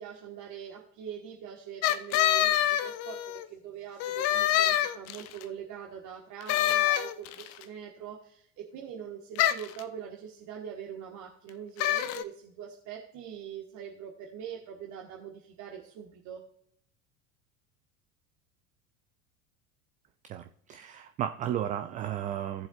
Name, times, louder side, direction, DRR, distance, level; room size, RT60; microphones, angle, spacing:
voice 1, 0.0-16.4, right 8 dB, 45° right, -1 dB, 1.5 m, -43 dB
sound 1, 1.8-3.5 4.0-5.4 6.5-7.5 9.4-9.8 11.8-12.2, left 12 dB, 40° left, 0.6 m, -26 dB
voice 2, 20.3-22.7, right 10 dB, 20° right, 9 dB, 0.3 m, -34 dB
16.5 x 7.2 x 2.4 m, 0.66 s
figure-of-eight pair, 75°, 42 cm